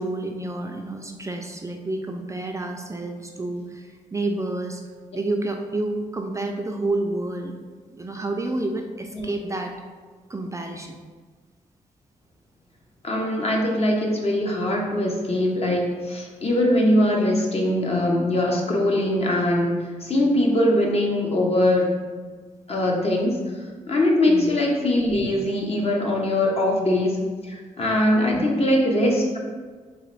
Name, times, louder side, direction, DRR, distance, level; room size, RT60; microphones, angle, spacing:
voice 1, 0.0-4.8 5.2-7.5 7.9-9.7 10.3-11.0 24.3-24.5 28.3-28.4, right 2 dB, 20° right, 3 dB, 0.4 m, -29 dB
voice 2, 13.0-21.9 22.7-23.4 23.9-27.2 27.4-29.4, left 1 dB, 45° left, -1 dB, 0.9 m, -22 dB
3.8 x 3.0 x 3.2 m, 1.5 s
cardioid pair, 70°, 14 cm